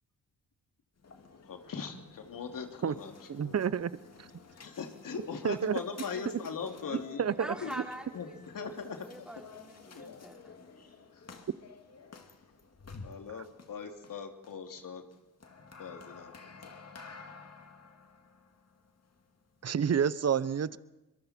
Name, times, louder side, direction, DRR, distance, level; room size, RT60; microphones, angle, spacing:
sound 1, 1.0-20.0, left 4 dB, 40° left, 2.5 m, -52 dB
voice 1, 1.5-3.6 4.6-7.3 7.6-7.9 8.1-9.0 9.9-10.2 11.1-11.2 13.0-15.0 15.8-16.3 16.6-16.7, left 5 dB, 60° left, 4 dB, 3.1 m, -40 dB
voice 2, 3.3-3.9 4.2-4.3 5.4-5.8 7.2-7.8 19.6-20.8, right 7 dB, 40° right, 17 dB, 1.0 m, -29 dB
voice 3, 7.3-8.4 9.0-10.6, equal, ahead, 0 dB, 4.6 m, -44 dB
25.5 x 22.5 x 4.6 m, 1.0 s
supercardioid pair, 55°, 38 cm